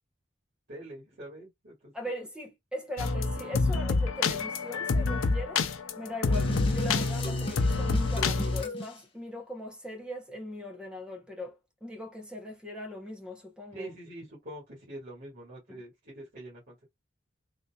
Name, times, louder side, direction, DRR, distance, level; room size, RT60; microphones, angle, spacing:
voice 1, 0.7-1.9 13.7-16.9, right 1 dB, 50° right, 1.9 m, -45 dB
voice 2, 1.9-13.9 15.7-15.8, left 1 dB, 5° right, 0.8 m, -40 dB
sound 1, 3.0-8.6, left 3 dB, 70° left, 0.6 m, -27 dB
sound 2, 6.3-9.0, equal, 25° left, 0.9 m, -36 dB
3.9 x 2.8 x 2.2 m
head